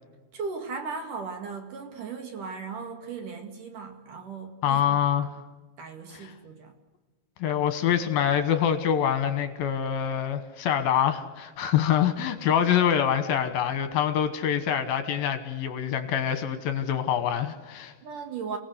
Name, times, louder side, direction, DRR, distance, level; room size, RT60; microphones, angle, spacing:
voice 1, 0.3-5.3 5.8-6.7 18.0-18.6, right 5 dB, 55° right, 5 dB, 3.0 m, -37 dB
voice 2, 4.6-5.3 6.1-6.3 7.4-17.9, left 9 dB, 65° left, 9 dB, 2.8 m, -25 dB
28.5 x 18.0 x 8.1 m, 1.3 s
omnidirectional pair, 5.3 m